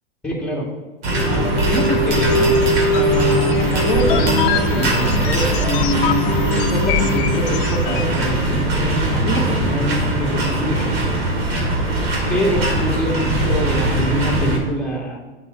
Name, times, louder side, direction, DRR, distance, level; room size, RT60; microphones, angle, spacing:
voice 1, 0.2-0.7 1.2-2.6 2.9-11.0 12.3-15.4, equal, 5° left, -3 dB, 2.0 m, -25 dB
sound 1, 1.0-14.6, right 1 dB, 75° right, 2.5 m, -21 dB
sound 2, 1.1-8.2, left 2 dB, 60° left, 0.9 m, -22 dB
6.8 x 6.0 x 5.5 m, 1.3 s
hypercardioid pair, 100°, 30 cm